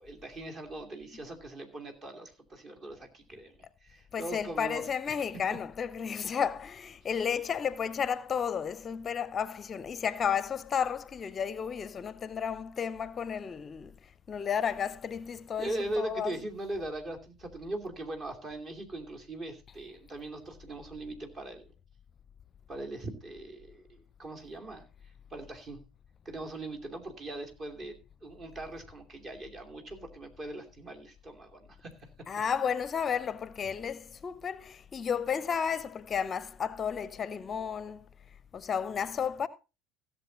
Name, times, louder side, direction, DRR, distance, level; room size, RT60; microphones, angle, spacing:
voice 1, 0.0-5.2 15.6-21.7 22.7-24.8 25.3-25.8 26.2-32.1, right 1 dB, 35° right, 2.7 m, -40 dB
voice 2, 4.1-16.3 32.3-38.1 38.5-39.5, left 7 dB, 35° left, 0.6 m, -32 dB
16.0 x 7.4 x 3.9 m
figure-of-eight pair, 65°, 0 cm